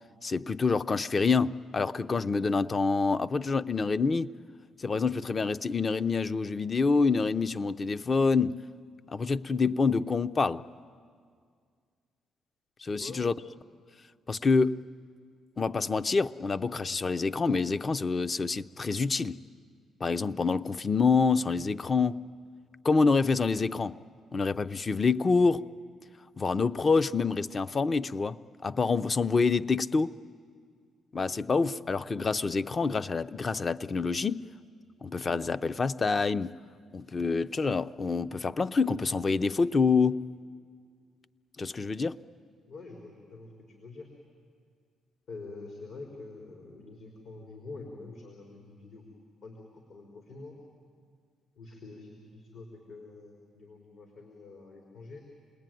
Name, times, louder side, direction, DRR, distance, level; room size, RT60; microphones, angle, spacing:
voice 1, 0.2-4.3 4.8-8.6 9.1-10.6 12.8-13.3 14.3-14.8 15.6-19.4 20.0-22.2 22.8-24.0 24.3-25.6 26.4-30.1 31.1-34.5 35.0-36.6 36.9-40.2 41.6-42.2, left 4 dB, 35° left, 0.6 m, -27 dB
voice 2, 13.0-13.3 42.7-43.5 43.8-44.1 45.3-49.0 49.4-50.6 51.6-55.2, left 3 dB, 75° left, 4.1 m, -46 dB
28.5 x 20.5 x 9.2 m
cardioid pair, 90°, 0 cm